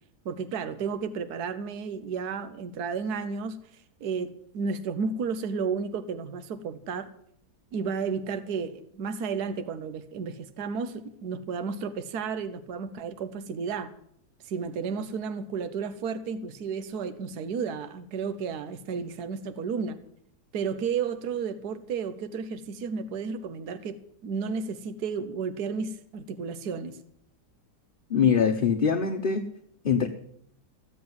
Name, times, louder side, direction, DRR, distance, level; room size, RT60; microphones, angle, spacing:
voice 1, 0.2-3.6 4.0-7.1 7.7-13.9 14.4-20.0 20.5-23.9 24.2-27.0, right 5 dB, 70° right, 11 dB, 1.5 m, -32 dB
voice 2, 28.1-29.5 29.8-30.1, left 6 dB, 40° left, 4 dB, 0.9 m, -23 dB
15.5 x 7.7 x 9.5 m, 0.68 s
omnidirectional pair, 1.8 m